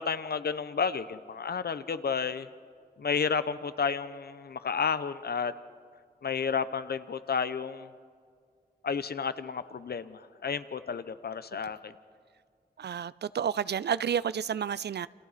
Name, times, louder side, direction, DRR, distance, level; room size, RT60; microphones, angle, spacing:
voice 1, 0.0-2.5 3.0-5.5 6.2-7.9 8.8-11.9, left 6 dB, 70° left, 0.8 m, -31 dB
voice 2, 12.8-15.1, right 8 dB, 85° right, 0.5 m, -30 dB
29.5 x 29.0 x 4.2 m
wide cardioid pair, 120°, 17 cm